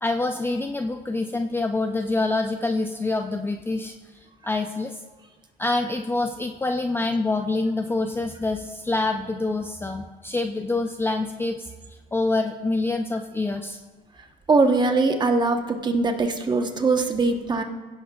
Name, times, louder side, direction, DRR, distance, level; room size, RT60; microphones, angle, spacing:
voice 1, 0.0-3.9 4.4-5.0 5.6-13.8, left 2 dB, 15° left, 5 dB, 0.5 m, -26 dB
voice 2, 14.5-17.6, right 3 dB, 25° right, 5 dB, 1.1 m, -21 dB
16.0 x 11.0 x 2.4 m, 1.3 s
cardioid pair, 110°, 17 cm